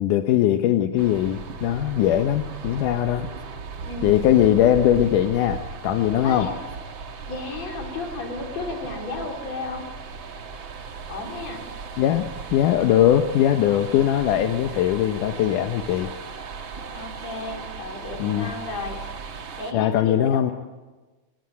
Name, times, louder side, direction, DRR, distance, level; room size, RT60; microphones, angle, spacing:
voice 1, 0.0-3.3 4.0-6.5 12.0-16.1 18.2-18.5 19.7-20.5, left 11 dB, 85° left, 8 dB, 2.5 m, -20 dB
sound 1, 1.0-19.7, right 5 dB, 45° right, 2.0 m, -37 dB
voice 2, 3.9-4.2 6.2-6.6 7.3-9.9 11.1-11.6 16.9-19.0 19.6-20.5, left 3 dB, 55° left, 3 dB, 4.9 m, -33 dB
23.5 x 20.0 x 9.5 m, 1.2 s
omnidirectional pair, 3.6 m